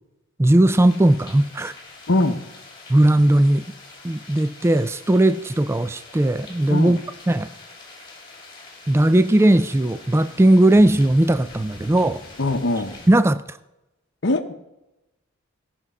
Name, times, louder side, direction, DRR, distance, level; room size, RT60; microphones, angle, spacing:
voice 1, 0.4-1.7 2.9-3.7 4.0-7.0 7.3-7.5 8.9-12.2 13.1-13.6, right 1 dB, 15° right, 0.3 m, -17 dB
sound 1, 0.7-13.1, left 2 dB, 25° left, 2.4 m, -44 dB
voice 2, 2.1-2.5 6.7-7.0 12.4-13.0 14.2-14.5, left 2 dB, 60° left, 0.8 m, -22 dB
15.5 x 6.0 x 5.4 m
head